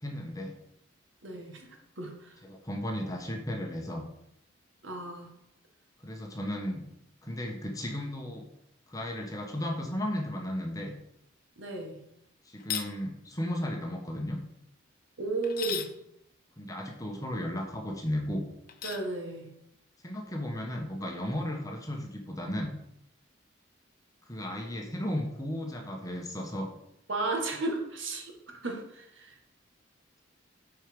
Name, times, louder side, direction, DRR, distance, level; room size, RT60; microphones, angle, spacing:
voice 1, 0.0-0.6 2.4-4.1 6.0-6.8 7.2-8.4 8.9-10.9 12.4-14.4 16.6-18.5 20.0-22.7 24.3-26.7, left 1 dB, 15° left, 2 dB, 1.1 m, -34 dB
voice 2, 1.2-1.7 2.0-2.3 4.8-5.3 11.6-12.0 15.2-15.9 18.8-19.5 27.1-28.3 28.6-29.3, right 2 dB, 75° right, 2 dB, 1.8 m, -34 dB
sound 1, 12.6-12.9 15.4-15.9 18.7-19.1, left 9 dB, 45° left, 0.7 m, -35 dB
8.4 x 4.6 x 5.2 m, 0.77 s
head